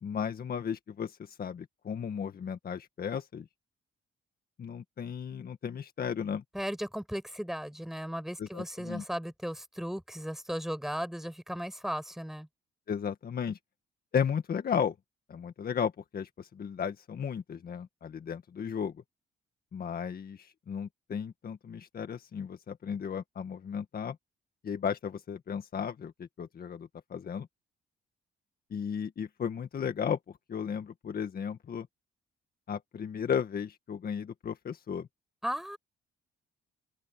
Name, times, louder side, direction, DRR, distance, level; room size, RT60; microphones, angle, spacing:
voice 1, 0.0-3.5 4.6-6.4 8.4-9.0 12.9-13.6 14.1-15.0 15.3-19.0 19.7-24.2 24.6-27.5 28.7-30.2 30.5-31.9 32.7-35.1, left 7 dB, 50° left, 1.9 m, -34 dB
voice 2, 6.5-12.5 35.4-35.8, equal, ahead, 5.7 m, -36 dB
cardioid pair, 90°, 20 cm